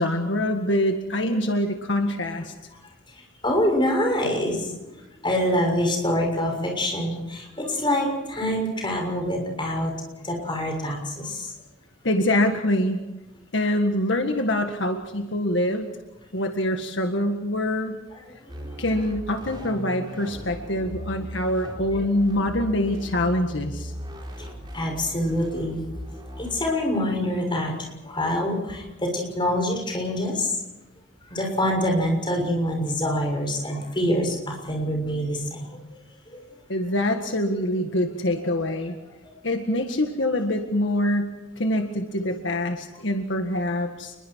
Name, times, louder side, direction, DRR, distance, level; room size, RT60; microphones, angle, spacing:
voice 1, 0.0-2.5 12.0-13.0 13.5-15.9 16.3-18.0 18.8-23.9 36.7-39.0 39.4-44.2, left 1 dB, 70° left, 4 dB, 1.8 m, -25 dB
voice 2, 3.1-11.5 18.1-18.2 18.5-18.8 19.6-19.7 21.9-22.1 24.4-24.5 24.7-25.8 26.4-27.8 28.0-30.5 31.2-35.8 36.3-36.4, left 1 dB, 25° left, 1 dB, 6.6 m, -26 dB
sound 1, 18.5-26.7, equal, 25° right, 4.6 m, -38 dB
29.0 x 22.0 x 4.7 m, 1.0 s
head